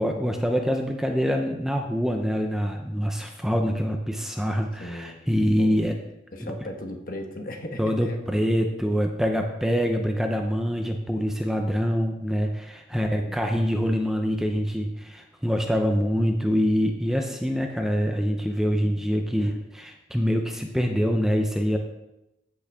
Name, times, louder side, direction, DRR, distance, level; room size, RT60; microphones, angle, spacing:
voice 1, 0.0-6.0 6.4-6.5 7.8-21.8, equal, 5° right, 3 dB, 0.6 m, -25 dB
voice 2, 4.8-5.2 5.5-5.9 6.3-8.2 12.9-13.4, left 1 dB, 50° left, 4 dB, 1.2 m, -37 dB
13.5 x 6.2 x 3.6 m, 0.92 s
head